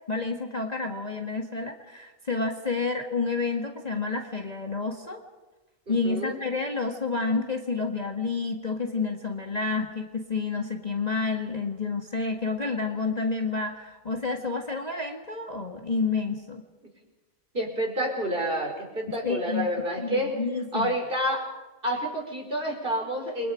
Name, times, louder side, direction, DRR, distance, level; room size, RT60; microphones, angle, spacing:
voice 1, 0.1-5.2 5.9-16.6 19.1-19.7 20.0-21.0, left 4 dB, 25° left, 2 dB, 1.8 m, -29 dB
voice 2, 5.9-6.4 17.5-20.4 20.7-21.5 21.8-23.5, equal, 35° right, 1 dB, 5.1 m, -29 dB
29.0 x 24.0 x 5.2 m, 1.1 s
omnidirectional pair, 1.6 m